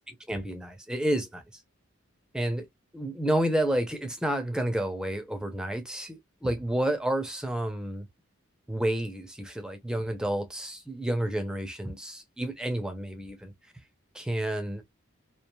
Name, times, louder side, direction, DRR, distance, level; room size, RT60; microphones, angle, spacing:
voice 1, 0.3-1.4 2.3-2.7 2.9-8.1 8.7-13.5 14.1-14.8, right 1 dB, 5° right, 0.5 m, -30 dB
3.0 x 2.4 x 2.2 m
head